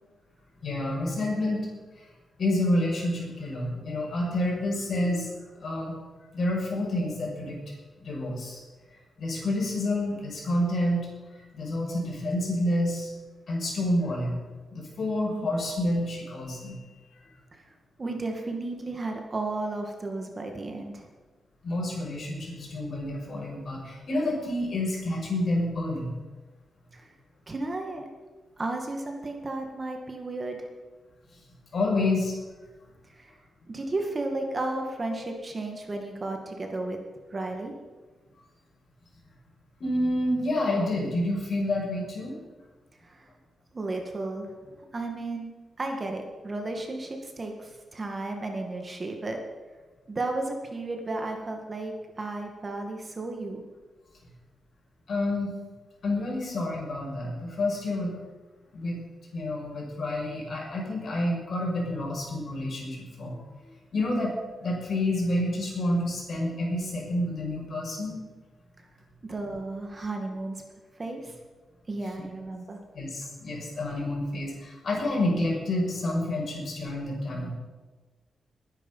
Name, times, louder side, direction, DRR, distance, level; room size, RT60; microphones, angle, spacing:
voice 1, 0.6-1.6 2.4-5.3 5.6-6.0 6.3-7.6 8.0-8.6 9.2-11.1 11.3-13.1 13.5-14.4 14.7-16.9 21.6-26.2 31.7-32.3 35.1-35.2 39.8-42.4 55.1-55.5 56.0-58.1 58.7-59.0 59.3-68.2 72.9-77.6, left 1 dB, 55° left, -2 dB, 6.5 m, -29 dB
voice 2, 18.0-21.1 26.9-27.1 27.5-28.1 28.6-30.6 33.1-33.4 33.7-37.0 37.3-37.7 43.0-43.3 43.7-45.5 45.8-49.4 50.1-53.6 69.2-70.6 71.0-71.4 71.9-72.8, right 2 dB, 30° right, 3 dB, 2.0 m, -33 dB
21.0 x 10.0 x 5.6 m, 1.3 s
wide cardioid pair, 140°, 0 cm